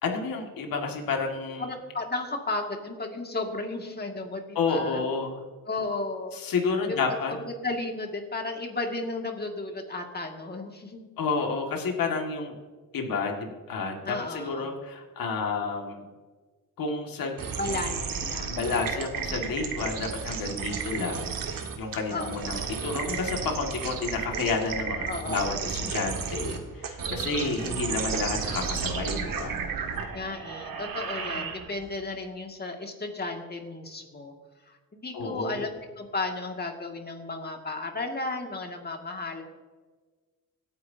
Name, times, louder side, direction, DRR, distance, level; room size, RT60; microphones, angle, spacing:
voice 1, 0.0-1.7 4.6-5.4 6.3-7.4 11.2-12.5 12.9-16.0 16.8-17.4 17.7-17.8 18.5-29.7 35.1-35.6, left 4 dB, 75° left, 2 dB, 2.1 m, -30 dB
voice 2, 1.6-5.0 5.7-6.4 6.9-7.0 7.4-11.1 14.1-14.7 17.6-18.9 22.1-22.7 25.1-25.6 30.1-34.3 34.7-35.7 36.0-39.4, left 2 dB, 30° left, 2 dB, 2.2 m, -34 dB
sound 1, 17.4-31.9, right 6 dB, 75° right, 1.7 m, -33 dB
25.5 x 9.7 x 2.8 m, 1.4 s
cardioid pair, 105°, 34 cm